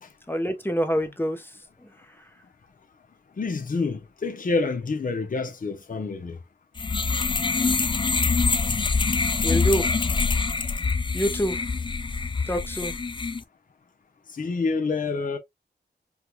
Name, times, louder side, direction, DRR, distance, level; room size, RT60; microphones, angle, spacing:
voice 1, 0.3-1.5 1.8-2.3 9.4-9.9 11.1-11.6 12.5-12.9, equal, 10° left, 0.8 m, -26 dB
voice 2, 3.4-6.4 14.3-15.4, left 4 dB, 50° left, 0.8 m, -27 dB
sound 1, 6.8-13.4, left 4 dB, 25° left, 0.4 m, -25 dB
4.7 x 2.3 x 2.2 m
cardioid pair, 65°, 18 cm